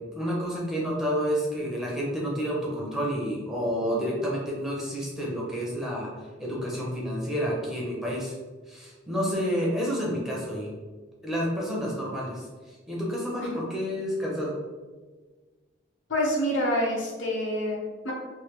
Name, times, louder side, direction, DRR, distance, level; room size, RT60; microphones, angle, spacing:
voice 1, 0.0-6.1 6.4-8.4 8.7-10.7 11.2-14.6, equal, 5° right, -5 dB, 0.7 m, -29 dB
voice 2, 16.1-18.1, left 1 dB, 75° left, -2 dB, 0.8 m, -27 dB
3.2 x 2.7 x 3.0 m, 1.4 s
head